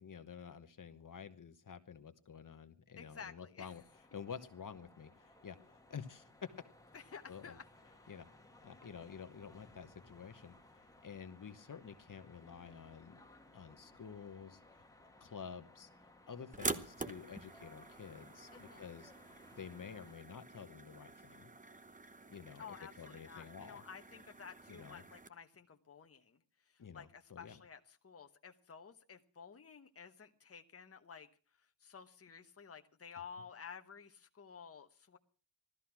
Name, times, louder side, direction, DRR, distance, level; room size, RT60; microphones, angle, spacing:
voice 1, 0.0-3.8 4.1-6.5 7.3-7.6 8.1-8.3 8.6-13.2 13.5-14.8 15.2-15.9 16.3-19.1 19.5-21.5 22.3-22.6 23.0-23.8 24.7-25.0 26.8-27.6, left 6 dB, 55° left, 9 dB, 1.2 m, -50 dB
voice 2, 3.0-3.8 6.9-7.6 8.0-8.1 18.5-18.9 22.6-31.3 31.6-35.2, left 6 dB, 35° left, 6 dB, 1.1 m, -53 dB
sound 1, 3.6-20.1, left 1 dB, 10° left, 1.6 m, -62 dB
sound 2, 16.5-25.3, right 3 dB, 20° right, 1.0 m, -47 dB
17.0 x 13.5 x 6.0 m, 0.39 s
wide cardioid pair, 120°, 39 cm